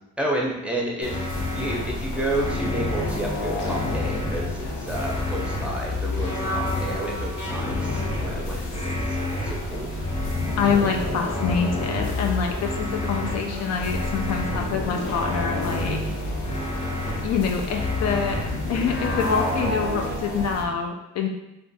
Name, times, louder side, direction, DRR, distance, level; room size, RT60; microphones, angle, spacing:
voice 1, 0.2-9.9, right 1 dB, 5° right, -3 dB, 0.6 m, -31 dB
sound 1, 1.0-20.6, left 2 dB, 75° left, 0.8 m, -30 dB
sound 2, 1.1-1.8 2.3-3.1 3.6-4.4 4.9-5.7 6.2-6.9 7.4-8.2 8.7-9.5 10.0-10.8 11.3-12.1 12.6-13.4 13.9-14.6 15.1-15.9 16.4-17.2 17.7-18.5 19.0-19.8, left 1 dB, 25° left, 0.9 m, -31 dB
voice 2, 8.4-8.8 10.6-16.0 17.2-18.4 18.7-21.3, left 6 dB, 60° left, 2 dB, 0.5 m, -26 dB
2.4 x 2.3 x 3.9 m, 0.91 s
cardioid pair, 90°, 30 cm